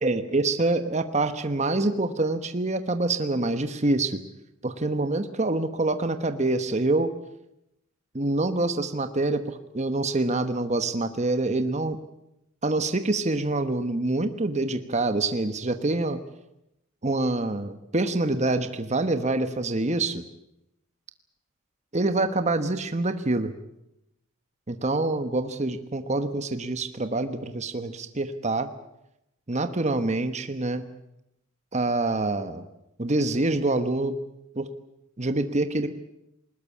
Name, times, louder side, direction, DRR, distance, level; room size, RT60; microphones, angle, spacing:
voice 1, 0.0-4.2 4.6-7.1 8.1-12.0 12.6-16.2 17.0-20.2 21.9-23.5 24.7-28.7 29.5-30.8 31.7-32.7 33.0-34.2 34.5-34.7 35.2-35.9, right 2 dB, 30° right, 9 dB, 1.1 m, -26 dB
21.0 x 20.0 x 8.5 m, 0.83 s
head